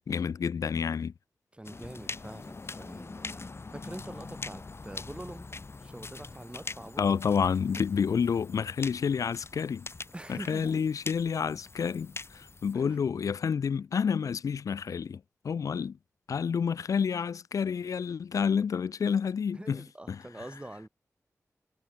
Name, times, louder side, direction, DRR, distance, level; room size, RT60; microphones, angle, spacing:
voice 1, 0.1-1.1 7.0-9.9 10.3-16.0 16.3-19.8 20.1-20.2, left 6 dB, 80° left, 0.4 m, -29 dB
voice 2, 1.5-5.5 5.8-7.2 7.8-7.9 10.1-10.8 12.7-13.0 19.5-20.9, right 1 dB, 20° right, 3.7 m, -45 dB
sound 1, 1.6-12.7, left 3 dB, 50° left, 1.9 m, -43 dB
cardioid pair, 50°, 6 cm